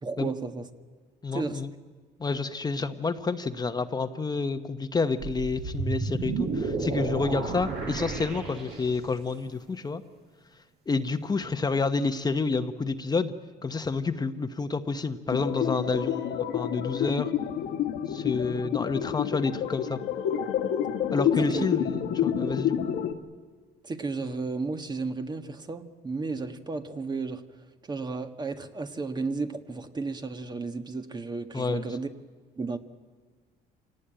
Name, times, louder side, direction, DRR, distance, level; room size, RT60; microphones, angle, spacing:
voice 1, 0.0-0.7 1.3-1.6 21.4-21.7 23.8-27.5 27.8-32.1 32.6-32.8, right 3 dB, 25° right, 1.4 m, -33 dB
voice 2, 1.2-1.7 2.2-10.0 10.9-13.3 13.6-17.3 18.1-20.0 21.1-22.8 31.5-31.9, left 4 dB, 25° left, 1.1 m, -29 dB
sound 1, 5.2-9.2, right 4 dB, 75° right, 7.2 m, -32 dB
sound 2, 15.3-23.1, left 9 dB, 85° left, 1.9 m, -29 dB
27.0 x 18.5 x 9.0 m
cardioid pair, 110°, 17 cm